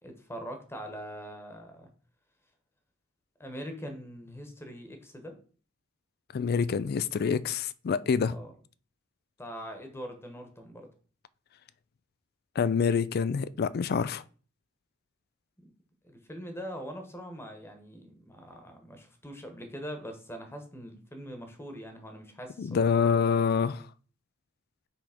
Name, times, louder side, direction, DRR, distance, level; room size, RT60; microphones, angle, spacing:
voice 1, 0.0-1.9 3.4-5.3 8.2-8.5 9.4-10.9 15.6-15.7 16.0-23.5, equal, 10° left, 1.1 m, -43 dB
voice 2, 6.3-8.4 12.6-14.2 22.6-23.8, left 6 dB, 50° left, 0.3 m, -26 dB
5.9 x 3.5 x 5.0 m
head